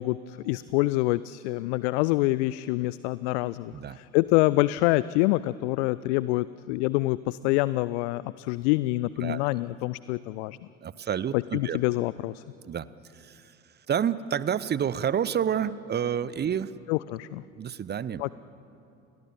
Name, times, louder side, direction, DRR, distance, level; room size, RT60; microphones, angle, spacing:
voice 1, 0.0-10.6 11.3-12.4 16.9-17.4 18.2-18.3, left 19 dB, 50° left, 18 dB, 0.6 m, -26 dB
voice 2, 10.8-11.8 12.6-12.9 13.1-13.5 13.9-16.7 17.6-18.2, right 8 dB, 25° right, 17 dB, 0.8 m, -29 dB
30.0 x 22.0 x 7.4 m, 2.7 s
figure-of-eight pair, 65°, 42 cm